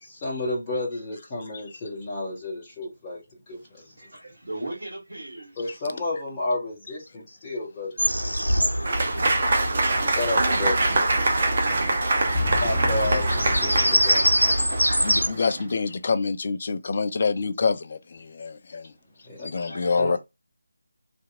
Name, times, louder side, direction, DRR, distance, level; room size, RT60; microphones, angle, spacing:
voice 1, 0.0-3.2 3.5-4.1 5.6-11.6 12.3-15.1 19.2-19.5 20.0-20.2, left 2 dB, 15° left, 0.8 m, -31 dB
voice 2, 4.0-5.7 19.5-20.2, right 2 dB, 60° right, 1.6 m, -38 dB
Bird vocalization bird call bird song, 8.0-15.3, equal, 85° left, 0.9 m, -25 dB
Applause / Crowd, 8.8-15.7, right 2 dB, 35° right, 0.7 m, -25 dB
voice 3, 15.0-18.9 19.4-20.2, left 4 dB, 35° left, 0.4 m, -26 dB
2.8 x 2.5 x 2.4 m
figure-of-eight pair, 160°, 0 cm